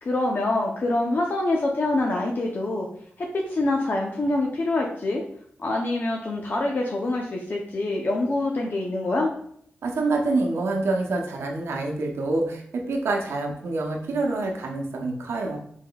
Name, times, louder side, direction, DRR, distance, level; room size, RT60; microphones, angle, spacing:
voice 1, 0.0-2.9 3.2-5.2 5.6-9.3, left 2 dB, 50° left, -1 dB, 0.6 m, -25 dB
voice 2, 9.8-15.6, right 2 dB, 80° right, 1 dB, 0.7 m, -26 dB
4.4 x 3.7 x 2.3 m, 0.66 s
cardioid pair, 70°, 4 cm